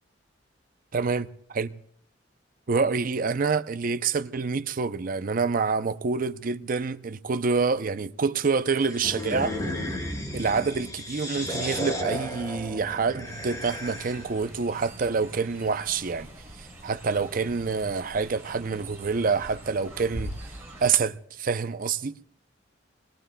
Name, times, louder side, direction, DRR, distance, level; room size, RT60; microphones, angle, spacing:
voice 1, 0.9-1.7 2.7-9.6 10.3-16.3 16.6-20.3 20.8-22.2, right 5 dB, 45° right, 0.5 m, -27 dB
sound 1, 8.9-14.4, equal, 20° left, 4.1 m, -33 dB
Fowl, 13.2-20.9, right 1 dB, 15° right, 5.9 m, -43 dB
28.0 x 21.5 x 2.2 m
head